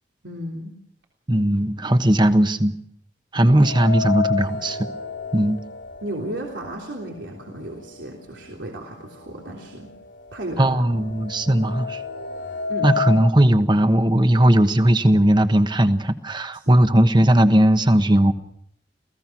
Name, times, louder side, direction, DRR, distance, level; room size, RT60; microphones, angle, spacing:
voice 1, 0.2-0.8 3.5-3.6 6.0-9.9 10.3-10.9 12.7-12.9 16.5-16.8, right 1 dB, 90° right, -1 dB, 3.4 m, -34 dB
voice 2, 1.3-2.7 3.3-4.9 5.3-5.6 10.6-12.0 12.8-18.3, right 1 dB, 25° right, 9 dB, 1.2 m, -18 dB
sound 1, 3.6-7.6 8.0-8.1 9.0-9.1 9.5-13.3, left 6 dB, 85° left, 2.9 m, -31 dB
28.5 x 17.0 x 6.1 m, 0.73 s
head